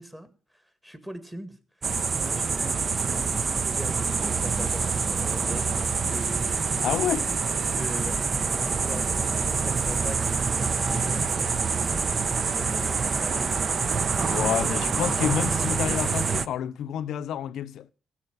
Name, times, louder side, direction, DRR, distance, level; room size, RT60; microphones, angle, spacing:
voice 1, 0.0-1.9 2.2-6.6 7.7-13.7 14.4-14.9 15.3-16.1, right 1 dB, 5° right, 1.8 m, -41 dB
sound 1, 1.8-16.5, right 5 dB, 40° right, 0.7 m, -26 dB
sound 2, 5.6-14.9, right 6 dB, 80° right, 1.8 m, -49 dB
voice 2, 6.8-7.3 14.2-17.9, left 10 dB, 75° left, 0.6 m, -29 dB
15.5 x 5.6 x 8.0 m
cardioid pair, 90°, 0 cm